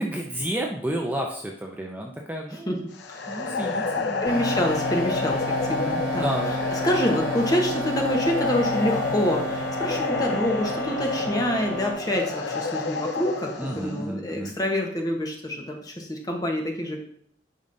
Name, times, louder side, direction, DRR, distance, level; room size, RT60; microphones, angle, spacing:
voice 1, 0.0-2.7 3.3-4.2 5.8-6.6 13.6-14.5, right 1 dB, 10° right, 0 dB, 0.5 m, -31 dB
sound 1, 2.9-14.1, left 3 dB, 90° left, 0.7 m, -30 dB
voice 2, 3.1-3.5 4.2-17.0, left 1 dB, 20° left, 1 dB, 1.1 m, -27 dB
sound 2, 3.5-4.3 5.3-6.1 8.0-8.8 9.8-10.6 12.5-13.3, left 5 dB, 60° left, 0.4 m, -29 dB
sound 3, 4.2-11.9, equal, 65° right, 3.0 m, -31 dB
8.6 x 5.2 x 2.7 m, 0.63 s
head